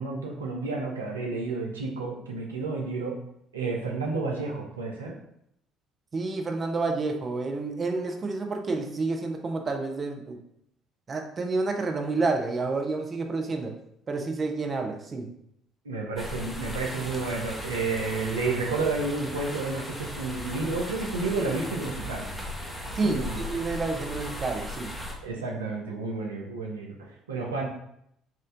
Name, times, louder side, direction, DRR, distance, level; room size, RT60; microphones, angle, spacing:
voice 1, 0.0-3.2 3.5-5.1 15.8-22.3 23.0-23.4 25.2-27.7, right 3 dB, 90° right, -1 dB, 0.6 m, -31 dB
voice 2, 6.1-10.4 11.1-13.7 14.1-15.3 23.0-24.9, right 3 dB, 35° right, 3 dB, 0.7 m, -29 dB
sound 1, 16.2-25.1, left 1 dB, 5° left, 1.1 m, -37 dB
4.4 x 2.5 x 3.8 m, 0.73 s
hypercardioid pair, 55°, 0 cm